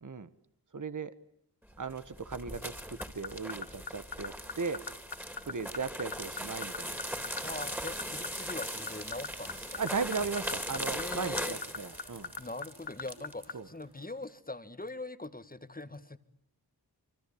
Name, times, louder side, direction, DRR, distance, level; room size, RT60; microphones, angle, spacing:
voice 1, 0.7-1.1 1.8-4.8 5.4-6.9 8.4-8.5 9.8-12.3 13.5-13.7, right 4 dB, 55° right, 13 dB, 1.4 m, -37 dB
sound 1, 1.8-13.5, equal, 5° right, 3.3 m, -40 dB
sound 2, 3.0-13.5, left 5 dB, 90° left, 1.5 m, -38 dB
sound 3, 7.0-14.2, right 3 dB, 85° right, 5.6 m, -54 dB
voice 2, 7.3-9.8 10.9-11.6 12.4-16.2, left 2 dB, 20° left, 11 dB, 1.8 m, -42 dB
26.0 x 25.5 x 8.7 m, 0.71 s
wide cardioid pair, 70°, 38 cm